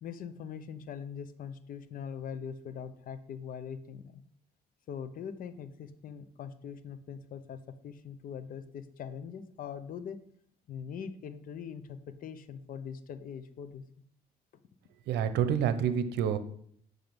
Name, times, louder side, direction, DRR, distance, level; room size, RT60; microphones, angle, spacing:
voice 1, 0.0-4.2 4.9-10.2 10.7-13.8, left 7 dB, 55° left, 11 dB, 0.8 m, -42 dB
voice 2, 15.1-16.4, right 8 dB, 80° right, 11 dB, 0.8 m, -28 dB
6.6 x 5.3 x 6.0 m, 0.64 s
cardioid pair, 110°, 17 cm